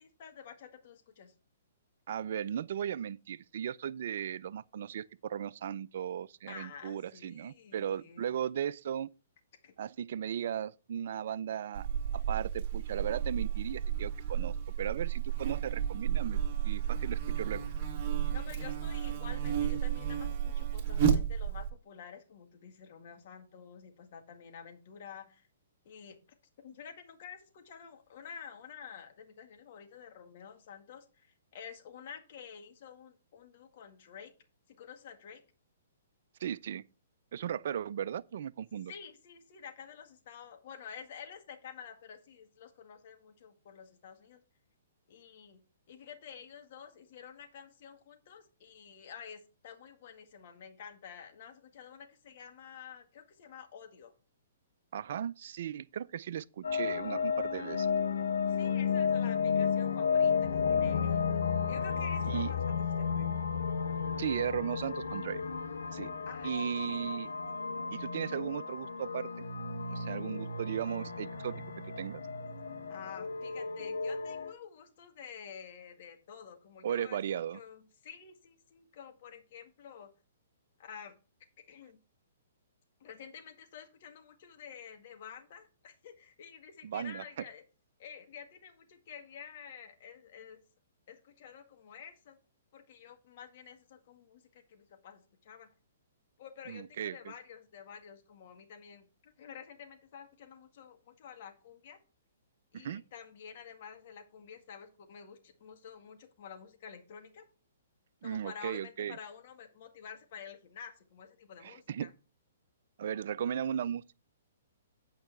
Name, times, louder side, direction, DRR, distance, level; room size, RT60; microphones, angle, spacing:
voice 1, 0.0-1.3 6.5-8.4 9.6-9.7 18.3-25.5 25.9-26.2 26.6-34.3 34.7-35.4 38.9-44.4 45.1-45.6 45.9-54.1 58.5-61.2 61.7-63.5 66.2-67.1 72.9-80.1 80.8-81.1 81.7-82.0 83.0-87.6 88.0-90.6 91.1-92.4 92.7-95.7 96.4-102.0 102.7-107.4 108.2-112.1, left 7 dB, 50° left, 1.9 m, -50 dB
voice 2, 2.1-9.1 9.8-11.9 12.1-17.7 36.4-36.8 37.3-38.9 54.9-57.9 61.3-61.4 62.3-62.5 64.2-65.4 65.9-66.1 66.4-67.3 67.9-69.3 69.9-71.6 72.0-72.2 76.8-77.6 86.8-87.2 96.7-97.3 102.7-103.0 108.2-109.2 111.6-112.1 113.0-114.1, right 9 dB, 60° right, 0.4 m, -36 dB
Buzz, 11.7-21.7, right 9 dB, 40° right, 1.6 m, -32 dB
sound 1, 56.6-74.5, left 6 dB, 80° left, 1.1 m, -33 dB
8.7 x 5.5 x 4.6 m
hypercardioid pair, 125°, 0 cm